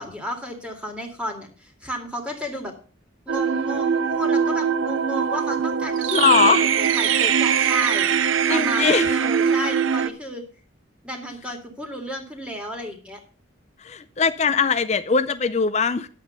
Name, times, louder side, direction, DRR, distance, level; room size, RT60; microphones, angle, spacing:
voice 1, 0.0-2.7 3.3-8.1 8.5-10.4 11.0-13.2, equal, 5° right, 2.2 m, -32 dB
sound 1, 3.3-10.1, right 7 dB, 90° right, 0.6 m, -22 dB
voice 2, 6.1-6.6 8.5-9.1 13.8-16.1, left 5 dB, 35° left, 0.5 m, -20 dB
10.5 x 8.2 x 5.5 m
head